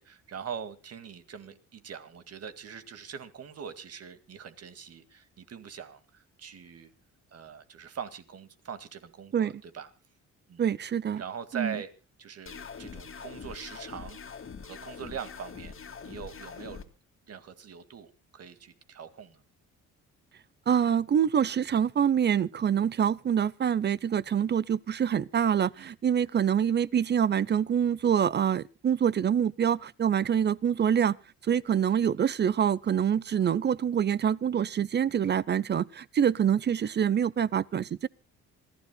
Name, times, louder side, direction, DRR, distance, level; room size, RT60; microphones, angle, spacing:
voice 1, 0.0-6.9 7.3-9.9 10.5-10.6 11.2-11.9 12.2-14.4 14.6-15.7 16.0-16.8 17.3-19.4 25.8-25.9, right 7 dB, 55° right, 2.1 m, -42 dB
voice 2, 10.6-11.2 11.5-11.7 20.7-31.2 31.5-38.1, right 8 dB, 35° right, 0.6 m, -26 dB
sound 1, 12.5-16.8, left 6 dB, 45° left, 2.3 m, -43 dB
26.5 x 15.0 x 2.2 m
cardioid pair, 90°, 30 cm